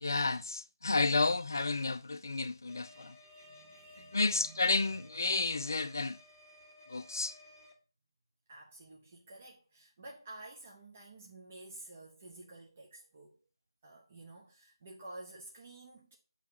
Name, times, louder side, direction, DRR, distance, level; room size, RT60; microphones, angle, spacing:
voice 1, 0.0-3.1 4.1-6.2 6.9-7.4, left 3 dB, 45° left, 0.4 m, -31 dB
sound 1, 2.7-7.7, left 2 dB, 15° left, 0.7 m, -57 dB
voice 2, 2.8-5.1 8.5-13.4 13.8-16.2, right 2 dB, 25° right, 0.5 m, -52 dB
8.0 x 2.9 x 4.1 m
figure-of-eight pair, 160°, 3 cm